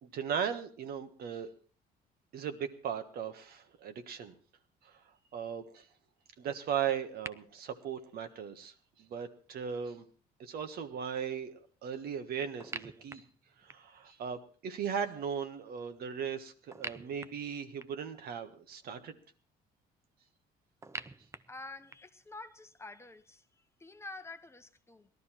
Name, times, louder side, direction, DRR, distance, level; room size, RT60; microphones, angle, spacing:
voice 1, 0.0-1.5 2.3-4.3 4.8-4.9 5.3-5.9 6.4-8.7 9.0-10.0 10.4-13.2 13.6-19.2, right 7 dB, 65° right, 1.5 m, -37 dB
sound 1, 7.3-7.4 12.6-14.0 16.7-18.1 20.8-22.2, right 3 dB, 15° right, 0.6 m, -45 dB
voice 2, 21.5-25.1, left 2 dB, 15° left, 0.9 m, -48 dB
18.0 x 12.5 x 4.5 m
cardioid pair, 110°, 17 cm